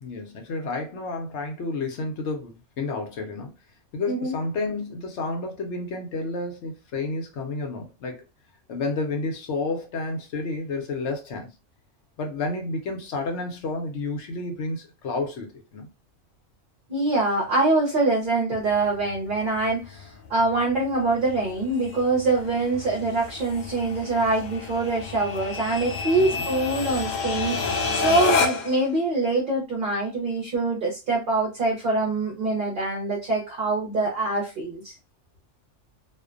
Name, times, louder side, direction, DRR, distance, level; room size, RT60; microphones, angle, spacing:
voice 1, 0.0-3.5 3.9-8.2 8.7-11.5 12.2-15.9 26.3-26.5, left 3 dB, 65° left, 0.9 m, -30 dB
voice 2, 4.1-4.4 16.9-34.9, right 2 dB, 50° right, 0.7 m, -24 dB
sound 1, 18.6-28.8, left 4 dB, 85° left, 0.4 m, -30 dB
2.4 x 2.1 x 2.4 m
omnidirectional pair, 1.4 m